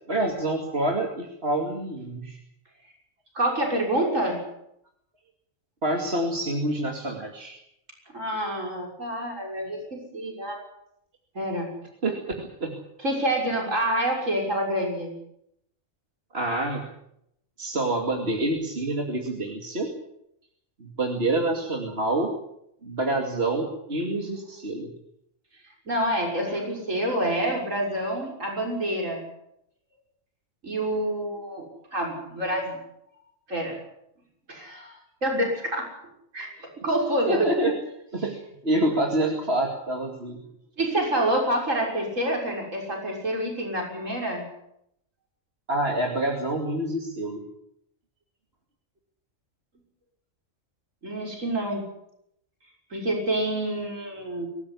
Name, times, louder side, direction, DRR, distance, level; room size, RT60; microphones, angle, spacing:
voice 1, 0.1-2.4 5.8-7.6 12.0-12.7 16.3-16.8 17.6-19.9 20.8-22.3 22.8-24.9 37.2-37.7 38.1-38.3 38.6-40.4 45.7-47.4, right 1 dB, 50° right, 1 dB, 2.9 m, -27 dB
voice 2, 3.3-4.4 8.1-10.6 11.3-11.7 13.0-15.1 25.9-29.2 30.6-32.8 33.5-33.8 34.5-35.9 36.3-37.4 40.8-44.4 51.0-51.8 52.9-54.5, right 1 dB, 70° right, 0 dB, 6.8 m, -27 dB
24.0 x 14.5 x 9.9 m, 0.78 s
omnidirectional pair, 1.4 m